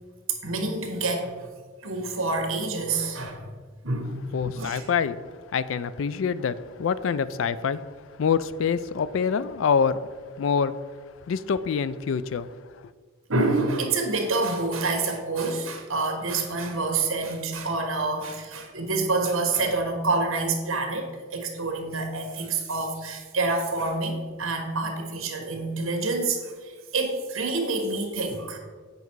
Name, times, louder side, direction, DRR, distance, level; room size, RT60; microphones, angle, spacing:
voice 1, 0.4-1.3 1.8-3.4 3.8-4.2 4.5-4.9 13.3-28.6, right 3 dB, 75° right, 4 dB, 1.4 m, -27 dB
voice 2, 4.3-5.2 5.5-7.8 8.2-10.0 10.4-10.7 11.3-12.5, left 6 dB, 65° left, 15 dB, 0.4 m, -25 dB
8.1 x 5.3 x 4.6 m, 1.5 s
head